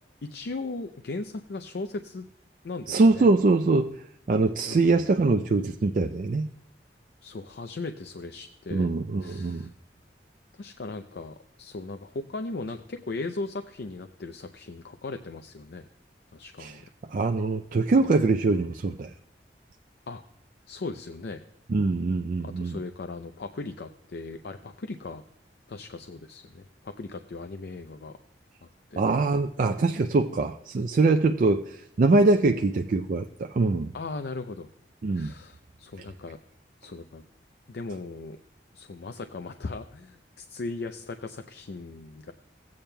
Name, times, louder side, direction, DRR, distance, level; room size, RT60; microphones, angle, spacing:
voice 1, 0.2-2.2 2.6-3.3 4.7-5.0 7.2-8.9 9.2-9.7 10.5-15.9 16.3-16.8 18.0-18.1 20.1-20.2 20.7-21.4 22.4-25.2 25.7-28.2 28.9-29.0 33.9-34.7 35.1-36.4 36.8-37.2 37.7-38.4 38.7-42.3, left 3 dB, 65° left, 8 dB, 0.5 m, -38 dB
voice 2, 2.9-6.5 8.7-9.7 16.6-16.7 17.1-19.1 21.7-22.8 29.0-33.9 35.0-35.3, right 3 dB, 45° right, 5 dB, 0.4 m, -23 dB
16.0 x 8.6 x 2.2 m, 0.77 s
head